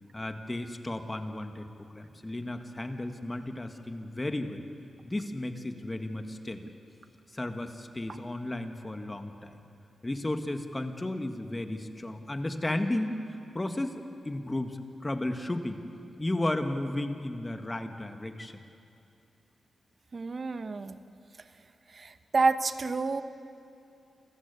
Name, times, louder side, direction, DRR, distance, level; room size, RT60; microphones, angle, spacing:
voice 1, 0.1-4.6 5.0-6.7 7.3-9.6 10.0-15.8 16.2-18.6, left 1 dB, 25° left, 6 dB, 1.8 m, -34 dB
voice 2, 20.1-21.0 21.9-23.2, right 4 dB, 50° right, 11 dB, 1.0 m, -29 dB
27.5 x 14.5 x 8.3 m, 2.7 s
cardioid pair, 60°, 0 cm